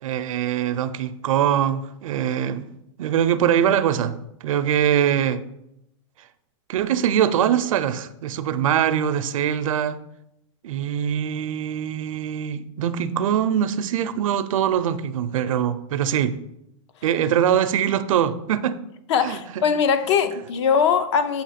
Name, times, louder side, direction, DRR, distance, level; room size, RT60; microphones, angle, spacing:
voice 1, 0.0-2.7 3.0-4.2 4.4-5.4 6.7-10.0 10.6-16.4 17.0-18.8 19.2-19.4, right 9 dB, 85° right, 0.5 m, -22 dB
voice 2, 19.1-21.4, left 6 dB, 60° left, 0.6 m, -21 dB
7.0 x 2.9 x 5.7 m
supercardioid pair, 165°, 17 cm